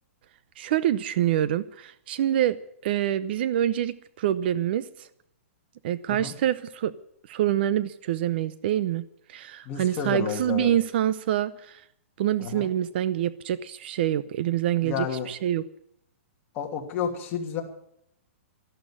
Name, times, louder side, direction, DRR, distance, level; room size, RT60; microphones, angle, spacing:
voice 1, 0.6-2.6 2.8-5.1 5.8-6.9 7.3-9.0 9.3-11.8 12.2-15.6, right 11 dB, 45° right, 16 dB, 0.7 m, -26 dB
voice 2, 9.6-10.7 12.4-12.7 14.8-15.3 16.5-17.6, left 7 dB, 25° left, 1 dB, 2.7 m, -31 dB
13.5 x 11.5 x 8.7 m, 0.74 s
hypercardioid pair, 160°, 7 cm